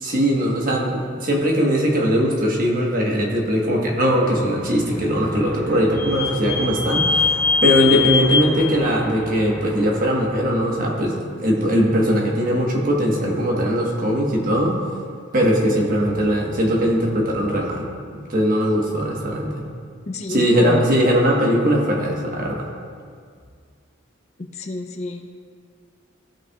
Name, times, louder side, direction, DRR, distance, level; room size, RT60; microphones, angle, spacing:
voice 1, 0.0-7.3 7.6-14.8 15.3-17.9 18.1-19.6 20.3-22.7, equal, 45° right, -1 dB, 1.3 m, -20 dB
Vehicle / Squeak, 4.6-10.2, left 5 dB, 10° left, 1.2 m, -24 dB
voice 2, 20.1-20.8 24.5-25.4, left 2 dB, 35° left, 5 dB, 0.5 m, -28 dB
14.5 x 5.7 x 2.4 m, 2.1 s
head